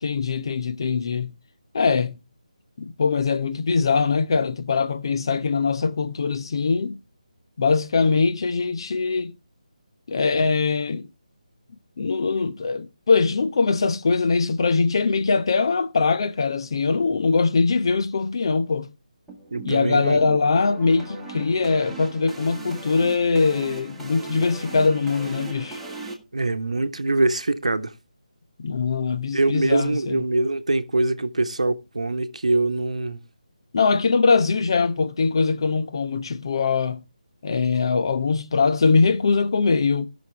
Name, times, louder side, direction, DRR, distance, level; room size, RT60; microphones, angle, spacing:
voice 1, 0.0-1.4 1.7-2.2 2.8-7.0 7.6-9.3 10.1-11.1 12.0-18.9 19.6-25.8 28.6-30.2 33.7-37.0 37.4-40.1, left 4 dB, 40° left, 0.9 m, -22 dB
sound 1, 19.3-26.1, right 3 dB, 5° right, 1.8 m, -38 dB
voice 2, 19.5-20.2 26.3-27.9 29.3-33.2, right 2 dB, 65° right, 1.1 m, -23 dB
18.5 x 6.4 x 3.3 m
figure-of-eight pair, 150°, 4 cm